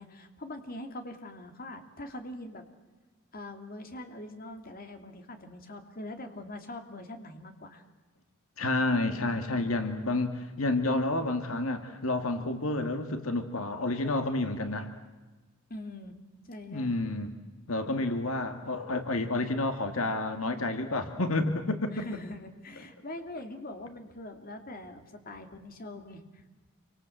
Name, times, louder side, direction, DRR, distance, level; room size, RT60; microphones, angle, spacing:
voice 1, 0.0-2.6 3.3-7.8 15.7-16.2 16.5-16.9 21.9-26.4, left 1 dB, 40° left, 6 dB, 2.7 m, -43 dB
voice 2, 8.6-14.9 16.7-17.3 17.7-22.1, left 2 dB, 75° left, 7 dB, 2.0 m, -30 dB
28.0 x 25.0 x 7.9 m, 1.2 s
head